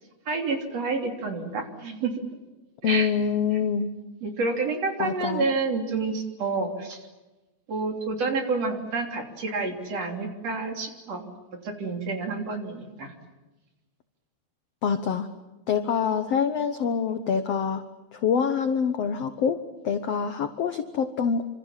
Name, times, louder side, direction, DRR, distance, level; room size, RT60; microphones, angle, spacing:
voice 1, 0.3-2.1 2.8-3.1 4.2-7.1 7.7-11.2 11.6-13.1, right 3 dB, 45° right, 4 dB, 4.0 m, -29 dB
voice 2, 2.8-3.9 5.0-5.5 14.8-15.3 15.7-17.8 18.1-19.6 19.8-21.4, left 7 dB, 75° left, 9 dB, 1.4 m, -25 dB
28.0 x 26.0 x 7.4 m, 1.1 s
omnidirectional pair, 4.5 m